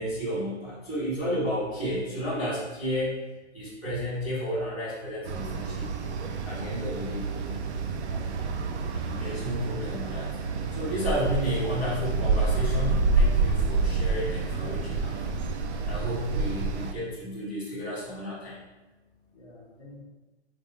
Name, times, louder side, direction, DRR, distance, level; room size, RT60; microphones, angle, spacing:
voice 1, 0.0-3.2 3.5-5.9 6.4-7.6 8.0-8.3 8.9-10.4 10.7-15.2 15.8-18.6, equal, 10° right, -17 dB, 0.5 m, -32 dB
sound 1, 5.2-16.9, right 4 dB, 75° right, 0.5 m, -28 dB
voice 2, 14.4-15.2 16.3-16.6 19.3-20.0, left 2 dB, 30° left, -6 dB, 0.7 m, -48 dB
4.0 x 2.4 x 3.0 m, 1.1 s
hypercardioid pair, 175°, 35 cm